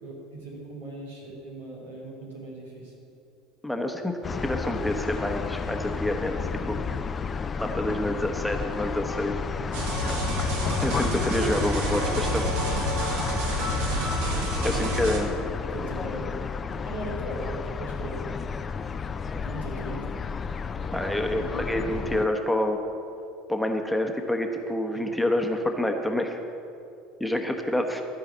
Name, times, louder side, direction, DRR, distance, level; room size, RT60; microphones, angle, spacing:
voice 1, 0.0-2.9 14.6-14.9 15.7-16.2 16.8-18.3 19.3-20.2 20.8-21.0 21.3-21.7 24.9-25.1, right 1 dB, 90° right, -5 dB, 3.1 m, -39 dB
voice 2, 3.6-6.8 7.6-9.4 10.8-12.5 14.6-15.3 20.9-22.8 23.5-26.4 27.2-28.0, left 1 dB, 5° left, 4 dB, 1.1 m, -27 dB
sound 1, 4.2-22.3, left 5 dB, 30° left, 0.5 m, -32 dB
sound 2, 9.7-15.2, equal, 70° right, 1.7 m, -28 dB
13.5 x 4.8 x 8.3 m, 2.6 s
hypercardioid pair, 70°, 0 cm